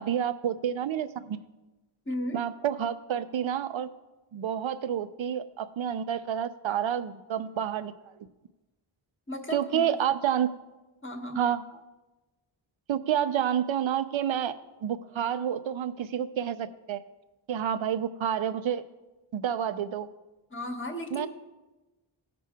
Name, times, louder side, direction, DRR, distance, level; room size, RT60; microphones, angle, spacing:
voice 1, 0.0-1.4 2.3-3.9 4.3-7.9 9.5-10.5 11.4-11.6 12.9-14.5 14.8-17.0 17.5-18.8 19.3-20.1 21.1-21.3, right 9 dB, 75° right, 12 dB, 0.6 m, -29 dB
voice 2, 2.1-2.4 9.3-9.8 11.0-11.4 20.5-21.3, left 1 dB, 25° left, 4 dB, 1.1 m, -34 dB
17.0 x 6.0 x 3.6 m, 1.1 s
wide cardioid pair, 105°, 48 cm